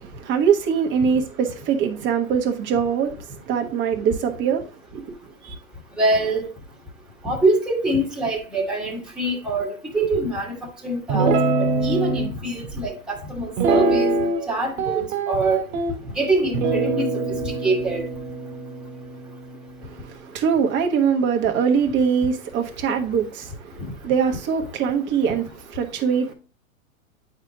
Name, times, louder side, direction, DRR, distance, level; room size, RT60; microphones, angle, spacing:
voice 1, 0.0-4.7 4.9-5.0 5.4-5.5 19.9-26.3, right 7 dB, 25° right, 1.2 m, -23 dB
voice 2, 6.0-6.5 7.2-10.5 10.8-11.3 11.8-14.1 14.5-15.6 16.1-17.0 17.4-18.0, right 2 dB, ahead, 1.5 m, -24 dB
Guitar, 11.1-12.3 13.6-14.5 14.8-15.9 16.5-20.0, right 3 dB, 50° right, 1.7 m, -24 dB
8.8 x 4.7 x 2.9 m
hypercardioid pair, 115°, 41 cm